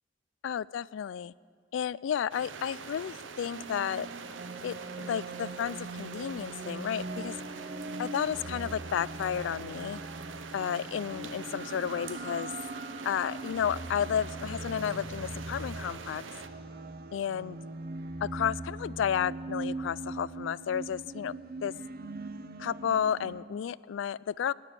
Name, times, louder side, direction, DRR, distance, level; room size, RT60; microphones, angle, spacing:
voice 1, 0.4-1.3 1.7-4.1 4.6-7.4 8.0-10.0 10.5-12.5 13.0-16.2 17.1-17.6 18.2-21.3 21.6-21.7 22.6-24.5, left 8 dB, 75° left, 21 dB, 0.3 m, -32 dB
sound 1, 2.3-16.5, right 5 dB, 85° right, 0.8 m, -45 dB
sound 2, 3.5-23.4, right 2 dB, 50° right, 0.7 m, -41 dB
18.5 x 6.9 x 9.0 m, 2.1 s
head